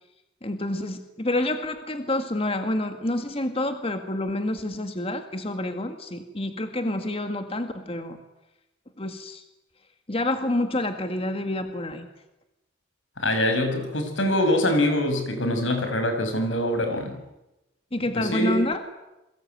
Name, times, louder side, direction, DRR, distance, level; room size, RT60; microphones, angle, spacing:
voice 1, 0.4-8.2 9.0-9.4 10.1-12.1 17.9-18.8, left 1 dB, 30° left, 7 dB, 1.9 m, -28 dB
voice 2, 13.2-17.2 18.1-18.6, left 1 dB, 85° left, 6 dB, 6.4 m, -24 dB
28.5 x 23.0 x 9.2 m, 0.96 s
head